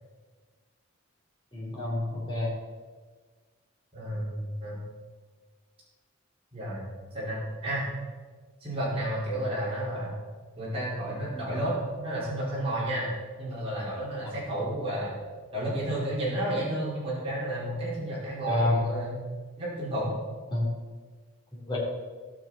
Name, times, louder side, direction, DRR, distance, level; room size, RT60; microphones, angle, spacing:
voice 1, 1.5-2.5 18.5-18.8 20.5-20.7 21.5-21.8, left 1 dB, 20° left, -5 dB, 3.4 m, -28 dB
voice 2, 3.9-4.8 6.5-7.9 8.6-10.2 10.6-13.1 13.4-15.1 15.5-19.2 19.6-20.1, right 1 dB, 30° right, -7 dB, 4.4 m, -31 dB
16.0 x 6.2 x 5.9 m, 1.4 s
head